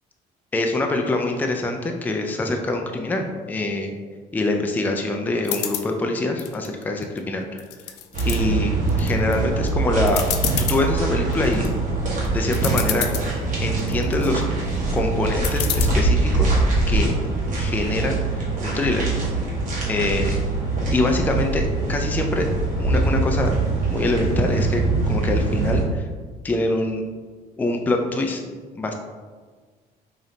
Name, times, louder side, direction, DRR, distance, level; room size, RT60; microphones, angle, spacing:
voice 1, 0.5-4.0 4.3-7.6 8.2-10.2 10.6-11.7 12.3-13.1 13.6-14.4 14.9-16.6 16.9-17.1 17.5-19.1 19.9-20.3 20.9-22.5 22.8-23.5 23.9-24.8 25.1-26.1 26.4-27.0 27.6-28.4 28.8-28.9, left 2 dB, 10° left, 3 dB, 0.3 m, -24 dB
sound 1, 5.4-5.9 6.4-7.2 7.6-8.4 8.9-9.3 9.7-9.8 10.1-10.8 11.3-11.7 12.2-12.3 12.5-13.3 13.8-14.3 15.4-15.8, left 11 dB, 90° left, 0.4 m, -28 dB
sound 2, 8.1-25.8, right 3 dB, 50° right, 1.3 m, -23 dB
3.1 x 2.8 x 3.8 m, 1.5 s
cardioid pair, 110°, 17 cm